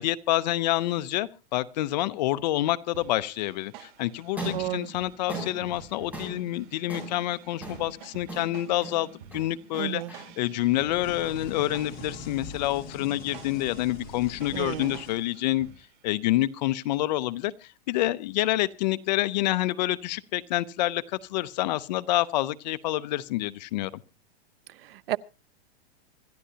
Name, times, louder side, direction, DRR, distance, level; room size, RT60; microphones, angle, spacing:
voice 1, 0.0-9.1 9.3-10.0 10.4-15.7 16.0-24.0, left 15 dB, 45° left, 0.7 m, -27 dB
sound 1, 2.9-16.1, right 9 dB, 50° right, 1.8 m, -50 dB
sound 2, 4.2-12.5, right 1 dB, 5° right, 6.6 m, -41 dB
voice 2, 4.5-4.9 9.8-10.1 14.5-15.0 24.7-25.2, right 14 dB, 65° right, 0.6 m, -32 dB
sound 3, 10.8-15.7, left 4 dB, 30° left, 4.0 m, -43 dB
25.5 x 12.5 x 2.8 m
supercardioid pair, 155°, 32 cm